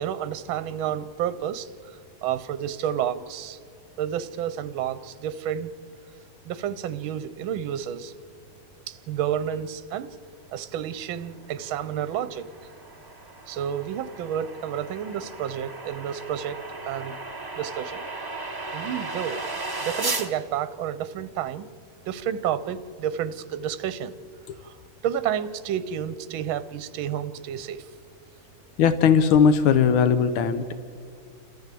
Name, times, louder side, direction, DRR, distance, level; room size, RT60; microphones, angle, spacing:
voice 1, 0.0-1.7 2.2-3.6 4.0-5.7 6.4-8.1 8.9-10.1 10.5-12.5 13.5-17.2 17.6-18.1 18.7-19.4 19.8-21.7 22.1-24.1 24.6-24.8 25.0-27.9, right 9 dB, 80° right, 14 dB, 1.5 m, -30 dB
sound 1, 11.6-20.3, right 3 dB, 30° right, 0.4 m, -35 dB
voice 2, 28.8-30.7, left 7 dB, 85° left, 10 dB, 1.6 m, -19 dB
29.5 x 13.0 x 7.5 m, 2.3 s
omnidirectional pair, 2.2 m